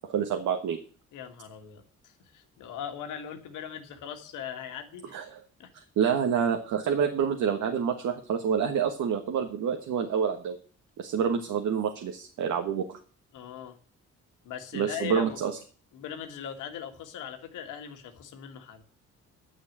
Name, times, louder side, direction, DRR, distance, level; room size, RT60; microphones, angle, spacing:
voice 1, 0.1-0.8 5.1-5.4 5.7-10.6 11.0-13.0 14.7-15.5, right 7 dB, 75° right, 5 dB, 1.4 m, -28 dB
voice 2, 1.1-5.2 5.6-5.7 13.3-13.8 14.4-15.4 15.9-18.8, left 8 dB, 90° left, 5 dB, 2.0 m, -40 dB
10.5 x 6.6 x 7.3 m, 0.42 s
cardioid pair, 90°, 30 cm